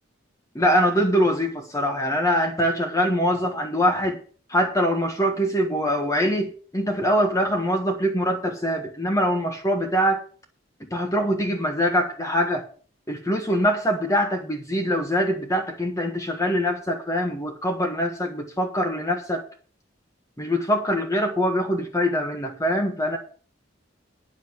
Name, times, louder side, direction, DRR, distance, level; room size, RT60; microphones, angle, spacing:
voice 1, 0.5-4.2 4.5-10.2 10.9-12.6 13.1-19.4 20.4-23.2, equal, 20° left, 1.4 m, -23 dB
9.9 x 6.5 x 7.9 m
head